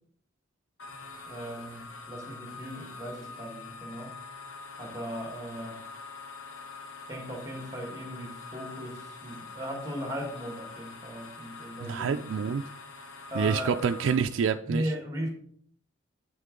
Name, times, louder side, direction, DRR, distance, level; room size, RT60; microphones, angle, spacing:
sound 1, 0.8-14.2, left 4 dB, 85° left, 1.1 m, -45 dB
voice 1, 1.3-4.2 4.8-5.8 7.1-12.2 13.3-13.8 14.7-15.3, equal, 15° right, 1.4 m, -37 dB
voice 2, 11.8-12.6 13.3-14.9, right 6 dB, 75° right, 0.3 m, -27 dB
7.4 x 6.4 x 3.8 m
head